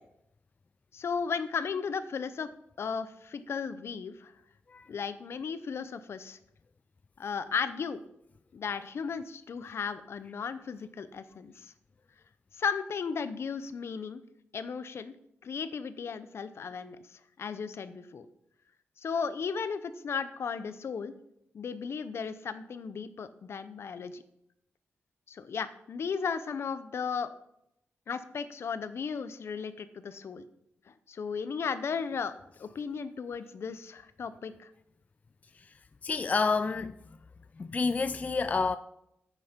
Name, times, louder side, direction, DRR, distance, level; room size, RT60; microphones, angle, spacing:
voice 1, 0.9-2.5 2.8-4.3 4.9-6.4 7.2-8.0 8.5-11.7 12.6-14.2 14.5-15.1 15.4-17.0 17.4-18.3 19.0-21.1 21.5-24.2 25.3-27.3 28.1-30.4 31.1-32.3 32.6-34.7, left 6 dB, 65° left, 0.7 m, -35 dB
voice 2, 35.5-37.2 37.6-38.8, left 4 dB, 30° left, 0.3 m, -30 dB
9.9 x 8.4 x 5.2 m
cardioid pair, 100°, 5 cm